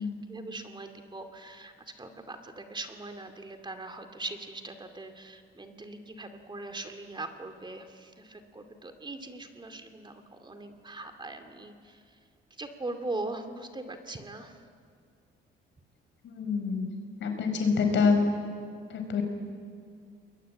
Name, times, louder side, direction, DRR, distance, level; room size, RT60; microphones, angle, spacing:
voice 1, 0.0-12.0 12.6-14.6, right 2 dB, 25° right, 6 dB, 2.4 m, -41 dB
voice 2, 16.3-16.9 17.2-18.2 18.9-19.2, left 5 dB, 70° left, 5 dB, 5.1 m, -26 dB
29.0 x 21.5 x 8.9 m, 2.2 s
cardioid pair, 90°, 20 cm